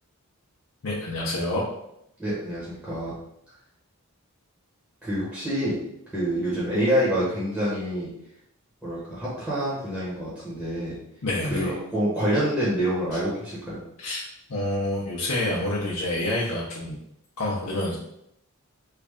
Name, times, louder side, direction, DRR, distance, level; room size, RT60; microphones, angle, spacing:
voice 1, 0.8-1.6 11.2-11.7 14.0-14.2 14.5-17.0 17.4-18.0, left 1 dB, 80° left, -5 dB, 0.7 m, -27 dB
voice 2, 2.2-3.1 5.0-5.8 6.1-8.1 8.8-11.0 11.5-13.8, equal, ahead, -10 dB, 1.0 m, -27 dB
3.2 x 2.4 x 3.5 m, 0.77 s
head